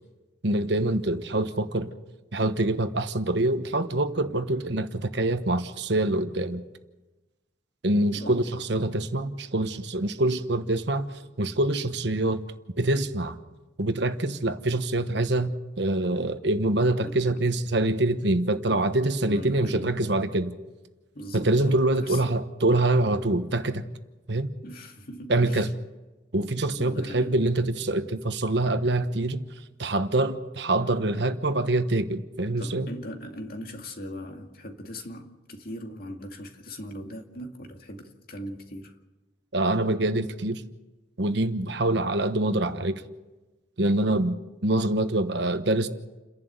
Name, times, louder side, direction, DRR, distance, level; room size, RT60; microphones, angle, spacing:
voice 1, 0.4-1.9 2.3-6.6 7.8-11.1 11.4-12.4 12.8-13.4 13.8-20.5 21.3-23.8 24.3-24.5 25.3-25.7 26.3-29.4 29.8-32.9 39.5-40.6 41.2-43.0 43.8-44.4 44.6-45.9, right 2 dB, 65° right, 1.2 m, -25 dB
voice 2, 8.1-8.4 17.0-17.2 18.7-18.9 19.2-19.9 21.1-22.2 24.6-25.7 26.8-27.4 32.6-39.0, equal, 50° left, 2.2 m, -40 dB
29.5 x 11.5 x 8.1 m
head